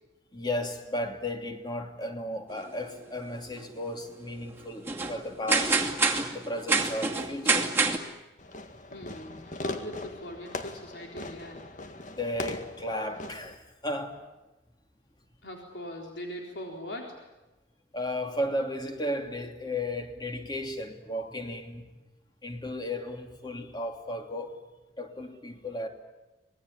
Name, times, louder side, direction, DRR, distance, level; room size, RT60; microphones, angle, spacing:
voice 1, 0.3-6.0 6.3-7.7 12.0-14.2 17.9-21.8 22.4-24.6 25.0-25.9, left 1 dB, 25° left, 2.9 m, -34 dB
sound 1, 2.5-2.6 3.6-3.7 3.8-3.9 4.6-4.7 4.9-5.2 5.5-8.0, right 4 dB, 15° right, 2.4 m, -26 dB
Fireworks, 8.4-13.5, left 2 dB, 45° left, 2.0 m, -39 dB
voice 2, 8.9-11.6 15.4-17.2, left 1 dB, 80° left, 4.0 m, -41 dB
26.0 x 19.5 x 9.9 m
head